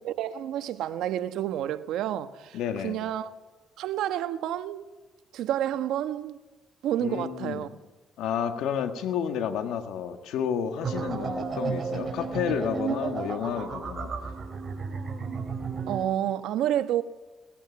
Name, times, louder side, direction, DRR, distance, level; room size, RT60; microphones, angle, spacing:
voice 1, 0.0-3.3 3.8-4.9 5.3-6.4 6.8-7.7 15.9-17.0, right 11 dB, 85° right, 1.2 m, -29 dB
voice 2, 2.5-3.0 7.0-7.7 8.2-14.1, left 8 dB, 90° left, 1.7 m, -31 dB
sound 1, 10.8-16.0, right 5 dB, 45° right, 3.6 m, -33 dB
19.5 x 15.5 x 9.8 m
cardioid pair, 90°, 0 cm